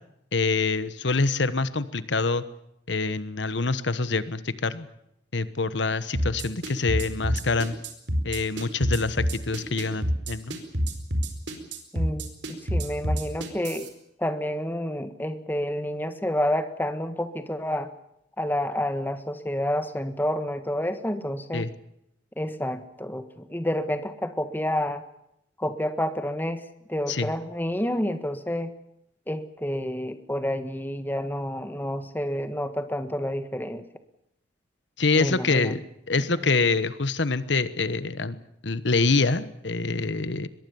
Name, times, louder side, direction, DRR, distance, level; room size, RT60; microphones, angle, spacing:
voice 1, 0.3-2.4 2.9-4.9 5.3-7.8 8.2-10.6 21.5-21.7 27.1-27.3 35.0-35.8 36.1-40.5, left 3 dB, 70° left, 14 dB, 1.2 m, -25 dB
sound 1, 6.1-13.9, equal, 65° right, 4.7 m, -27 dB
voice 2, 11.9-13.9 14.2-17.9 18.4-21.7 22.4-25.0 25.6-26.6 26.9-28.7 29.3-33.8 35.1-35.7 36.2-36.5, left 1 dB, 10° left, 9 dB, 1.6 m, -29 dB
23.5 x 22.0 x 7.0 m, 0.77 s
head